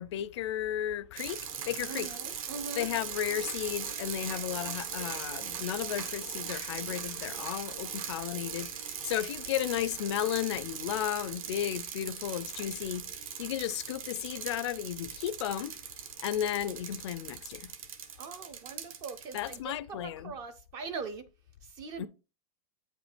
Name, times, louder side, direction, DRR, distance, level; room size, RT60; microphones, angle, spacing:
voice 1, 0.0-2.1 2.8-15.8 16.2-17.7 19.3-20.3 22.0-22.1, left 11 dB, 45° left, 0.4 m, -34 dB
sound 1, 1.2-19.6, right 8 dB, 60° right, 1.2 m, -40 dB
voice 2, 1.9-2.9 18.2-21.3 21.6-22.1, right 5 dB, 20° right, 0.3 m, -41 dB
8.7 x 5.1 x 3.2 m
supercardioid pair, 170°, 20 cm